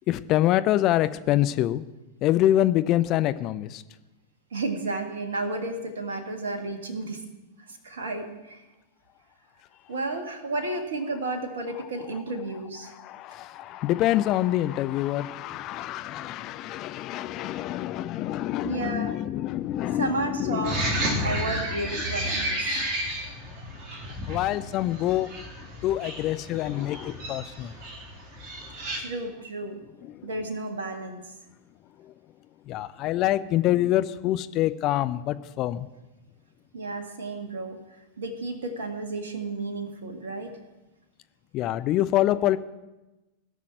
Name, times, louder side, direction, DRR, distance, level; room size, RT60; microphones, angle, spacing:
voice 1, 0.1-1.8 2.2-3.8 13.0-20.7 22.7-22.9 24.3-25.3 25.8-27.7 32.7-35.9 41.5-42.6, left 13 dB, 35° left, 12 dB, 0.6 m, -25 dB
voice 2, 4.5-7.2 7.7-8.6 9.9-12.9 18.6-19.2 19.9-22.7 29.0-29.8 30.2-31.3 36.7-37.8 38.2-40.5, right 2 dB, 65° right, 5 dB, 1.8 m, -32 dB
sound 1, 20.6-29.0, right 1 dB, 35° right, 2.9 m, -32 dB
17.0 x 6.2 x 9.0 m, 1.1 s
figure-of-eight pair, 90°, 0 cm